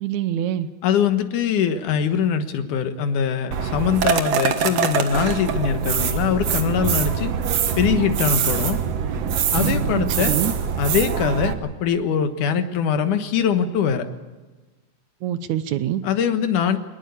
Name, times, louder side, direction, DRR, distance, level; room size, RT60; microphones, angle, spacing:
voice 1, 0.0-0.7 9.9-10.5 15.2-16.0, right 11 dB, 70° right, 13 dB, 2.1 m, -25 dB
voice 2, 0.8-7.3 7.8-8.8 9.5-10.4 10.8-14.1 16.0-16.8, left 7 dB, 75° left, 8 dB, 2.9 m, -22 dB
sound 1, 3.5-11.5, right 7 dB, 55° right, 2.2 m, -23 dB
22.5 x 19.5 x 8.4 m, 1.3 s
omnidirectional pair, 3.6 m